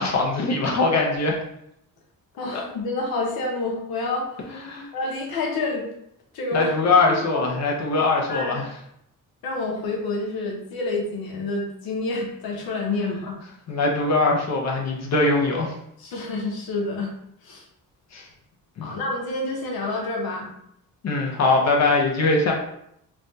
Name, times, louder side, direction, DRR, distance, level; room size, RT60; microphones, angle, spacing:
voice 1, 0.0-1.4 2.5-2.6 4.5-4.9 6.5-8.6 13.7-15.7 18.1-18.2 18.8-18.9 21.0-22.5, left 3 dB, 50° left, -1 dB, 0.6 m, -21 dB
voice 2, 2.4-4.5 4.9-5.9 6.3-6.7 7.1-7.5 8.3-8.7 9.4-13.4 16.0-17.1 17.4-17.7 18.8-20.5, left 2 dB, 90° left, 0 dB, 0.8 m, -28 dB
3.3 x 2.2 x 2.6 m, 0.76 s
cardioid pair, 115°, 35 cm